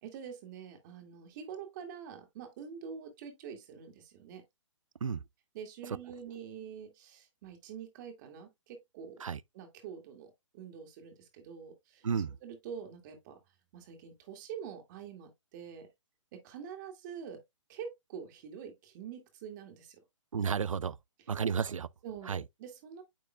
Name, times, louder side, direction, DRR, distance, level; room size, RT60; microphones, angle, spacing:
voice 1, 0.0-4.4 5.5-9.2 9.5-13.4 13.7-15.9 16.3-17.4 17.7-20.0 22.0-23.0, right 7 dB, 35° right, 2.0 m, -46 dB
voice 2, 12.0-12.4 20.3-21.0 21.3-21.9 22.3-22.4, right 6 dB, 85° right, 0.4 m, -32 dB
8.9 x 5.1 x 2.3 m
figure-of-eight pair, 130°, 16 cm